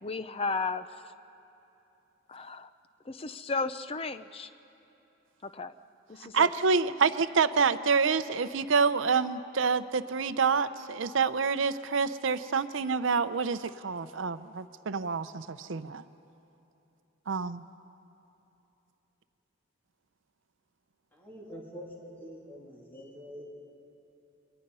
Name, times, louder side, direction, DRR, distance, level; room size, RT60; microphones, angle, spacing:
voice 1, 0.0-1.1 2.3-2.7 3.0-4.5 5.4-5.7 6.1-6.5, left 4 dB, 30° left, 12 dB, 0.6 m, -34 dB
voice 2, 6.3-16.0 17.3-17.6, right 5 dB, 70° right, 12 dB, 0.6 m, -27 dB
voice 3, 21.1-23.4, equal, 10° left, -4 dB, 3.1 m, -45 dB
27.5 x 23.0 x 5.5 m, 2.9 s
head